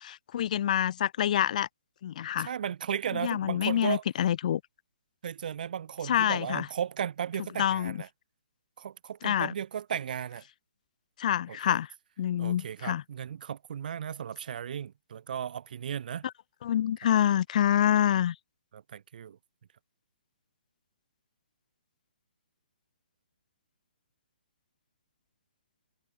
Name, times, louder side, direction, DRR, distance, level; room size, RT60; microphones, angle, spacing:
voice 1, 0.0-1.7 2.0-2.5 3.2-4.6 6.1-6.7 7.6-8.0 9.2-9.5 11.2-11.9 12.2-13.0 16.6-18.3, left 10 dB, 45° left, 1.1 m, -26 dB
voice 2, 2.4-4.0 5.2-8.1 8.8-10.4 11.5-11.8 12.4-16.2 18.7-19.4, right 8 dB, 55° right, 1.2 m, -35 dB
hypercardioid pair, 160°, 6 cm